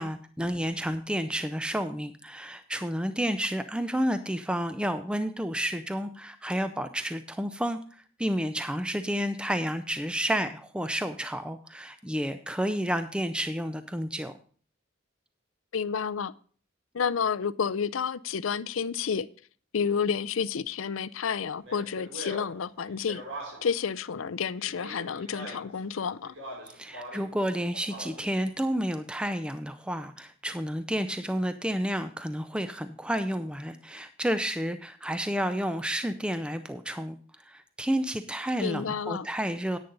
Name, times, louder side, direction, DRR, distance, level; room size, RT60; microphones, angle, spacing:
voice 1, 0.0-14.3 26.7-37.2 37.4-39.8, equal, 5° right, 0.5 m, -30 dB
voice 2, 15.7-16.3 16.9-19.3 19.7-23.2 23.6-26.4 38.6-39.3, left 6 dB, 85° left, 0.5 m, -30 dB
Speech, 21.6-23.8 24.6-25.8 26.2-27.3 27.7-28.4, right 1 dB, 90° right, 6.1 m, -42 dB
10.5 x 9.3 x 3.9 m
head